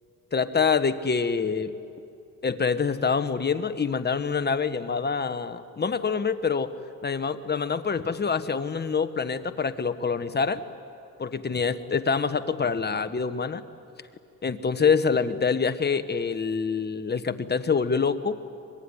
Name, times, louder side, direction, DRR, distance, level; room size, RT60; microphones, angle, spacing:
voice 1, 0.3-1.7 2.4-6.7 7.0-10.6 11.2-13.6 14.4-18.4, left 5 dB, 30° left, 10 dB, 1.3 m, -26 dB
24.5 x 22.5 x 9.9 m, 2.7 s
cardioid pair, 105°, 33 cm